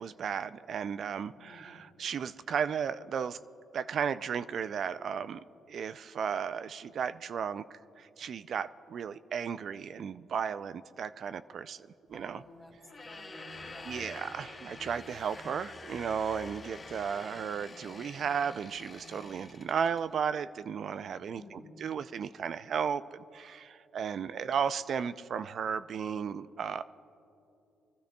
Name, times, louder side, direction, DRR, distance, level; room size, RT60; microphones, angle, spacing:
voice 1, 0.0-3.4 3.7-12.4 13.8-26.8, right 7 dB, 60° right, 13 dB, 0.3 m, -35 dB
voice 2, 12.1-12.7 13.0-14.1 21.3-21.9, left 1 dB, ahead, 0 dB, 2.3 m, -52 dB
sound 1, 12.8-20.1, left 3 dB, 35° left, 2.7 m, -47 dB
26.5 x 13.0 x 2.3 m, 2.9 s
cardioid pair, 90°, 0 cm